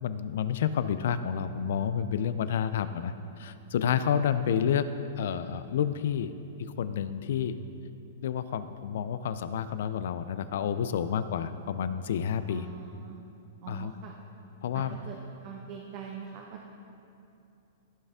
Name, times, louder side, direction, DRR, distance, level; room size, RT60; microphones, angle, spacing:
voice 1, 0.0-4.9 5.2-6.3 6.6-7.6 8.2-12.7 13.7-13.9 14.6-15.0, left 8 dB, 70° left, 12 dB, 0.4 m, -29 dB
voice 2, 12.5-13.2 13.6-14.2 14.7-15.1 15.4-16.7, right 7 dB, 45° right, 0 dB, 0.9 m, -43 dB
14.5 x 5.5 x 3.6 m, 2.7 s
hypercardioid pair, 125°, 0 cm